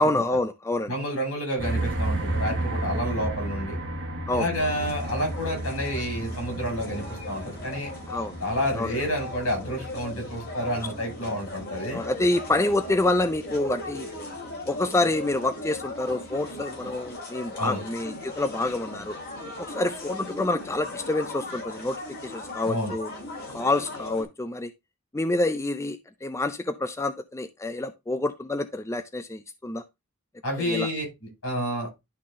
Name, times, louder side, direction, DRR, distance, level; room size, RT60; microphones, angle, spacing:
voice 1, 0.0-0.9 4.3-4.5 8.1-8.3 8.8-8.9 11.9-14.1 14.7-19.2 19.6-23.1 23.5-24.7 25.1-29.8 30.6-30.9, left 2 dB, 15° left, 0.4 m, -27 dB
voice 2, 0.9-3.8 4.3-7.9 8.4-12.0 17.6-17.8 22.7-22.9 30.4-31.1 31.4-31.9, equal, 75° left, 5.4 m, -29 dB
sound 1, 1.6-17.1, right 1 dB, 55° right, 1.3 m, -34 dB
sound 2, 4.5-24.2, left 2 dB, 45° left, 3.1 m, -39 dB
11.5 x 3.9 x 3.6 m
head